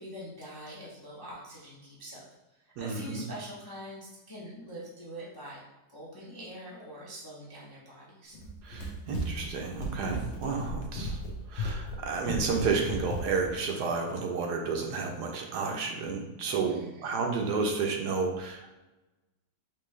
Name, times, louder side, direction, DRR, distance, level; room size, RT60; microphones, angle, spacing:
voice 1, 0.0-2.2 2.6-5.6 5.9-8.4 16.7-17.1, equal, 25° left, -7 dB, 0.5 m, -44 dB
voice 2, 2.8-3.3 8.6-11.2 11.5-18.8, right 4 dB, 75° right, 2 dB, 1.2 m, -31 dB
Run, 8.3-13.6, equal, 60° left, 0.8 m, -36 dB
4.5 x 3.0 x 3.1 m, 1.0 s
omnidirectional pair, 1.9 m